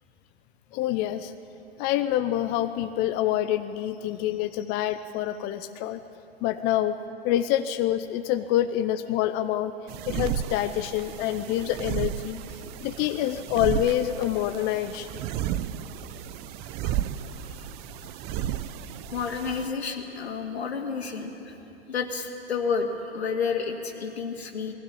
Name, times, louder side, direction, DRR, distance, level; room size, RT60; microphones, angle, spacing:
voice 1, 0.7-1.3 1.8-6.0 6.4-7.0 7.2-9.7 10.1-15.2, left 12 dB, 30° left, 9 dB, 0.6 m, -27 dB
sound 1, 9.9-19.7, right 11 dB, 30° right, 0.7 m, -33 dB
voice 2, 19.1-21.6 21.9-24.7, left 5 dB, 80° left, 4 dB, 2.3 m, -30 dB
20.0 x 16.0 x 8.6 m, 2.8 s
hypercardioid pair, 110°, 32 cm